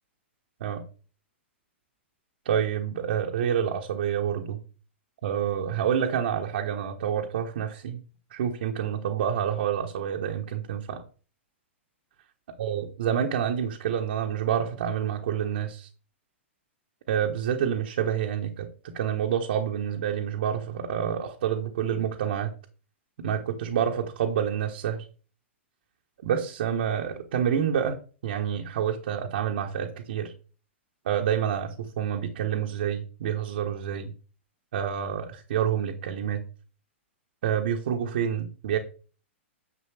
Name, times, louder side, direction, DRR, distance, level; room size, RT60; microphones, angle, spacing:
voice 1, 2.4-4.6 5.2-8.0 8.3-11.0 12.6-15.9 17.1-22.5 23.2-25.0 26.2-28.0 28.2-30.3 31.0-34.1 34.7-36.4 37.4-38.8, right 8 dB, 55° right, 1 dB, 1.3 m, -28 dB
10.0 x 7.4 x 3.4 m, 0.37 s
figure-of-eight pair, 105°, 7 cm